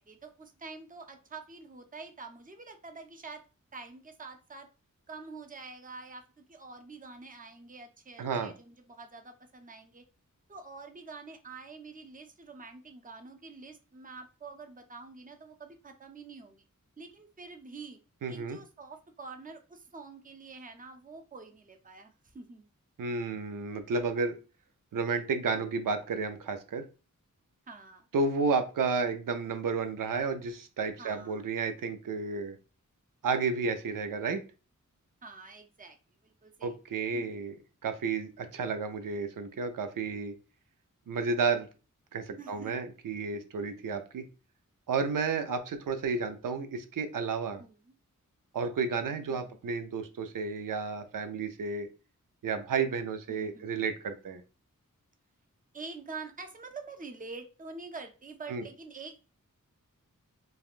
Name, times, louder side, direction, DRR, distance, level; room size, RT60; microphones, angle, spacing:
voice 1, 0.0-3.4 3.7-4.7 5.1-10.0 10.5-16.6 17.0-18.0 18.3-22.7 27.7-28.1 31.0-31.4 35.2-36.0 36.2-36.8 37.1-37.3 42.4-42.8 47.6-47.9 49.3-49.6 53.3-53.8 55.7-59.2, right 4 dB, 25° right, 6 dB, 0.5 m, -46 dB
voice 2, 8.2-8.5 18.2-18.6 23.0-24.4 24.9-26.8 28.1-32.6 33.2-34.4 36.6-37.5 37.8-40.3 41.1-41.7 42.1-44.2 44.9-47.6 48.5-51.9 52.4-54.4 58.5-58.6, right 4 dB, 85° right, 8 dB, 0.5 m, -32 dB
3.4 x 2.2 x 2.4 m, 0.33 s
wide cardioid pair, 75°, 32 cm